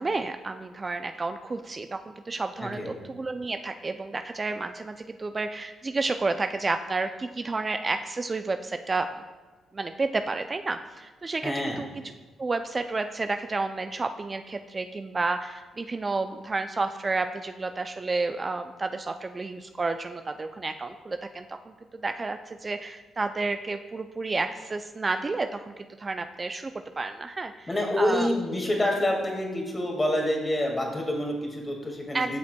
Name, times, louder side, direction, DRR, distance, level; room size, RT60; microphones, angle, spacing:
voice 1, 0.0-9.1 9.7-12.0 12.4-27.7 28.0-28.4 32.1-32.4, right 3 dB, 35° right, 8 dB, 0.3 m, -31 dB
voice 2, 11.4-11.8 27.7-32.4, left 1 dB, 25° left, 0 dB, 1.9 m, -27 dB
12.0 x 5.8 x 2.2 m, 1.3 s
supercardioid pair, 65°, 0 cm